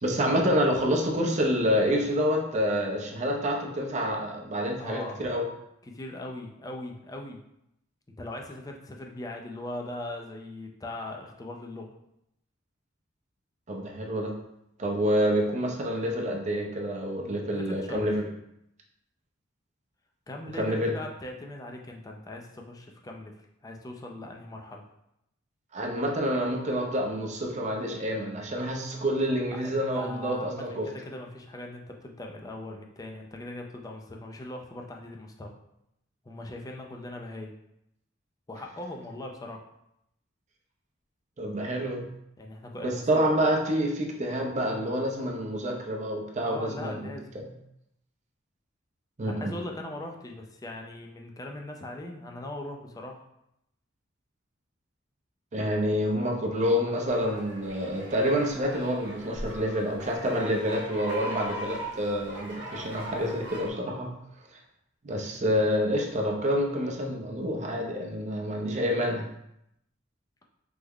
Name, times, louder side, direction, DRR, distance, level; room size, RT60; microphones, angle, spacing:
voice 1, 0.0-5.4 13.7-14.3 14.8-18.3 20.6-20.9 25.7-30.9 41.4-42.1 42.8-47.0 47.3-47.5 49.2-49.5 55.5-64.1 65.0-69.2, equal, 35° right, 0 dB, 0.5 m, -28 dB
voice 2, 4.8-5.2 5.8-7.4 8.2-11.9 17.5-18.2 20.3-23.3 23.6-24.8 29.5-35.5 36.3-37.5 38.5-39.6 42.4-43.2 46.4-47.3 49.2-53.2, left 1 dB, 20° left, 1 dB, 0.4 m, -40 dB
sound 1, 57.1-63.7, right 1 dB, 60° right, 0.8 m, -40 dB
3.4 x 2.1 x 3.5 m, 0.80 s
head